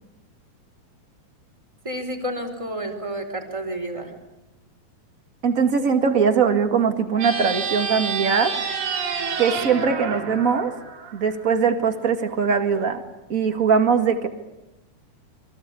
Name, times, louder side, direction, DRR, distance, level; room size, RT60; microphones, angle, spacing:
voice 1, 1.8-4.1, right 1 dB, 10° right, 2 dB, 3.8 m, -30 dB
voice 2, 5.4-8.5 9.4-10.7 11.1-13.0 13.3-14.3, right 6 dB, 30° right, 5 dB, 1.7 m, -21 dB
sound 1, 7.1-11.6, right 6 dB, 75° right, 4.2 m, -29 dB
29.0 x 24.0 x 8.4 m, 0.99 s
omnidirectional pair, 4.2 m